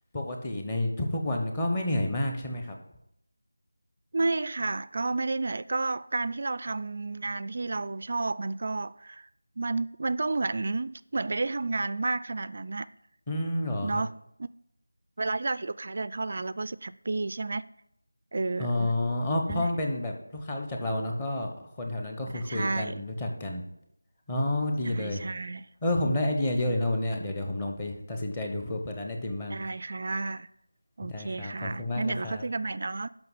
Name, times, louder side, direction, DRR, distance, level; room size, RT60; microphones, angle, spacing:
voice 1, 0.1-2.8 13.3-14.0 18.6-21.5 21.8-23.6 24.3-25.2 25.8-29.6 31.1-32.4, left 1 dB, 15° left, 1.1 m, -30 dB
voice 2, 4.1-9.3 9.6-12.9 13.8-14.1 14.4-14.5 15.2-17.6 18.3-19.0 19.5-19.7 22.3-23.0 24.8-25.7 29.5-30.5 31.0-33.1, right 3 dB, 45° right, 0.3 m, -31 dB
12.0 x 5.7 x 5.6 m
figure-of-eight pair, 170°, 0 cm